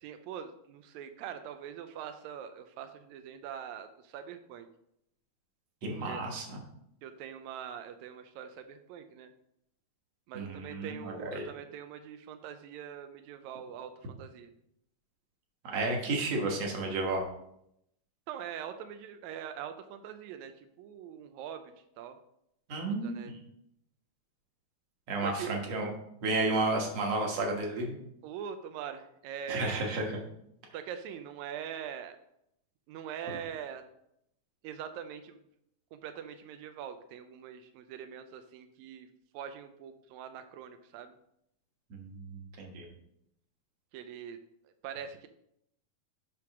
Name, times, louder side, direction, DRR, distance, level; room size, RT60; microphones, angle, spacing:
voice 1, 0.0-4.7 6.0-6.2 7.0-9.3 10.3-14.5 18.3-22.2 22.9-23.3 25.2-25.5 28.2-29.9 30.7-32.2 32.9-33.8 34.6-35.4 35.9-39.1 39.3-41.2 43.9-44.4 44.8-45.3, right 8 dB, 90° right, 8 dB, 1.6 m, -43 dB
voice 2, 5.8-6.6 10.3-11.5 15.6-17.2 22.7-23.2 25.1-25.9 26.2-28.0 29.5-30.2 41.9-42.9, right 2 dB, 55° right, 1 dB, 2.1 m, -32 dB
7.9 x 3.5 x 5.8 m, 0.76 s
omnidirectional pair, 3.8 m